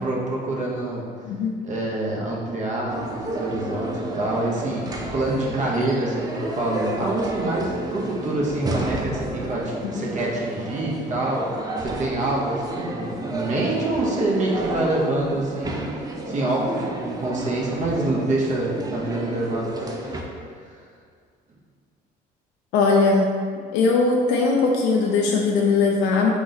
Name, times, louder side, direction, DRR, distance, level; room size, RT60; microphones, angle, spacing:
voice 1, 0.0-1.1 1.6-20.2 20.6-20.8, right 2 dB, 45° right, -3 dB, 0.8 m, -26 dB
voice 2, 1.3-1.6 9.8-10.1 22.7-23.3 23.7-26.3, left 4 dB, 90° left, -1 dB, 0.5 m, -20 dB
sound 1, 2.9-20.2, right 1 dB, 20° right, 0.5 m, -31 dB
3.8 x 3.0 x 4.0 m, 2.1 s
cardioid pair, 110°, 17 cm